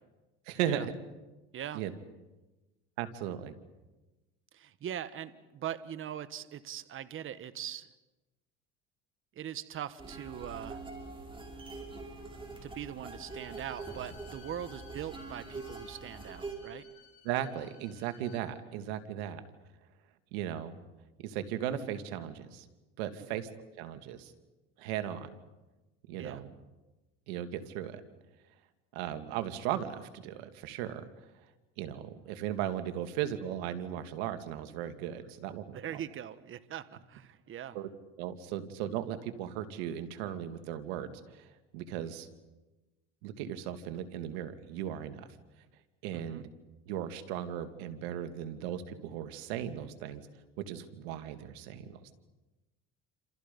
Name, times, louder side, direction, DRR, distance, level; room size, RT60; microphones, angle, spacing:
voice 1, 0.5-0.9 1.7-1.9 3.0-3.5 17.2-19.4 20.3-20.7 21.2-22.7 23.0-23.5 23.8-24.3 24.8-25.3 26.1-26.5 27.3-28.0 28.9-31.1 31.8-36.0 37.7-37.9 38.2-42.3 43.2-45.2 46.0-46.5 46.9-50.2 50.7-52.1, right 10 dB, 90° right, 9 dB, 2.1 m, -37 dB
voice 2, 4.5-7.9 9.3-10.8 12.6-16.8 26.2-26.4 35.7-37.8 46.1-46.4, right 10 dB, 40° right, 13 dB, 1.4 m, -41 dB
sound 1, 10.0-16.6, right 3 dB, 15° right, 5.7 m, -44 dB
Bowed string instrument, 13.2-18.4, left 10 dB, 90° left, 7.2 m, -58 dB
29.0 x 27.0 x 5.4 m, 1.1 s
supercardioid pair, 105°, 30 cm